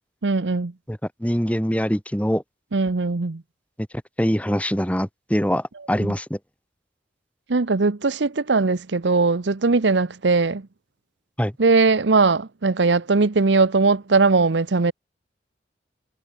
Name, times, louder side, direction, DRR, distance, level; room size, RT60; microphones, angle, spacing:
voice 1, 0.2-0.7 2.7-3.4 7.5-10.6 11.6-14.9, right 3 dB, 85° right, 0.8 m, -19 dB
voice 2, 0.9-2.4 4.2-6.4 11.4-11.5, equal, 10° left, 3.0 m, -23 dB
head